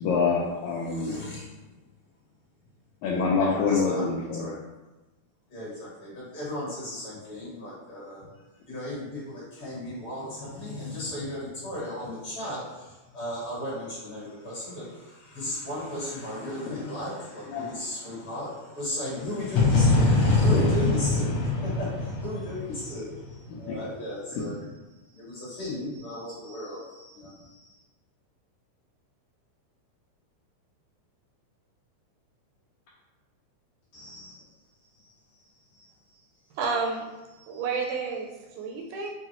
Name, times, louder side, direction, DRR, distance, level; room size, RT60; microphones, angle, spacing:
voice 1, 0.0-1.1 3.0-4.5 16.7-16.8 17.5-17.7 19.2-19.3 20.5-20.6 23.5-23.8 24.3-24.4, left 4 dB, 80° left, -4 dB, 1.7 m, -26 dB
voice 2, 0.8-1.5 3.1-4.0 4.4-4.6 5.5-8.2 8.7-24.6 25.1-27.7 33.9-34.4 35.0-35.1 35.7-35.9 37.4-37.6, left 1 dB, 50° left, -8 dB, 2.1 m, -36 dB
sound 1, 19.6-23.4, left 2 dB, 65° left, 1.7 m, -23 dB
voice 3, 36.6-37.1 37.5-39.1, right 4 dB, 80° right, -1 dB, 1.9 m, -30 dB
5.5 x 2.3 x 2.9 m, 1.1 s
omnidirectional pair, 3.7 m